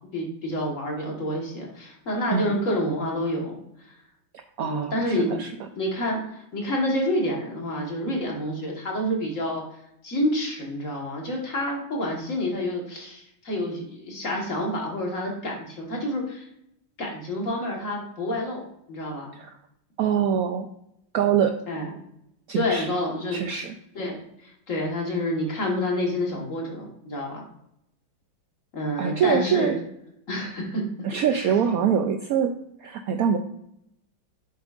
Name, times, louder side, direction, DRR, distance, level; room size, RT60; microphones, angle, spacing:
voice 1, 0.1-3.9 4.6-5.4 5.8-9.6 10.0-16.5 17.0-18.6 18.9-19.3 21.7-21.9 22.5-23.4 23.9-27.4 28.7-29.7 30.3-30.9 31.3-31.4, left 1 dB, 45° left, -1 dB, 1.7 m, -28 dB
voice 2, 4.6-5.5 19.4-19.6 20.0-20.7 21.1-21.5 22.5-22.9 23.3-23.8 29.0-29.8 31.0-32.5 32.8-33.4, right 8 dB, 90° right, 6 dB, 0.7 m, -24 dB
7.5 x 7.1 x 2.4 m, 0.76 s
omnidirectional pair, 2.1 m